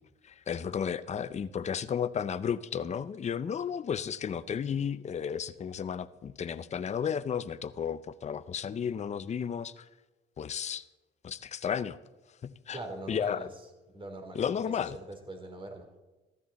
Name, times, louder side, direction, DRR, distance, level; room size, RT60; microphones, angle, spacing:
voice 1, 0.2-9.9 10.4-10.8 11.2-12.0 12.4-12.8 13.1-13.5 14.3-15.0, left 7 dB, 35° left, 0.5 m, -33 dB
voice 2, 12.7-13.6 13.9-15.9, right 2 dB, 25° right, 3.2 m, -43 dB
14.0 x 13.0 x 4.1 m
cardioid pair, 90°, 20 cm